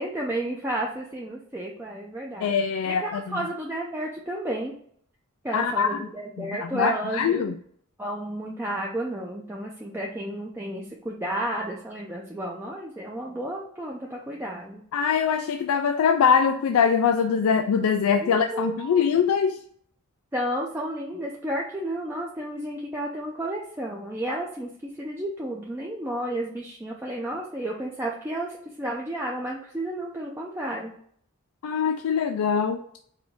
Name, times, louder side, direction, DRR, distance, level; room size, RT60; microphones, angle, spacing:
voice 1, 0.0-2.5 2.8-4.7 5.4-7.5 8.0-14.8 18.2-19.1 20.3-30.9, right 1 dB, 10° right, -2 dB, 0.5 m, -32 dB
voice 2, 2.4-3.4 5.5-6.1 6.4-7.5 14.9-19.6 31.6-32.8, left 6 dB, 85° left, 7 dB, 0.3 m, -23 dB
4.8 x 2.6 x 3.5 m, 0.63 s
head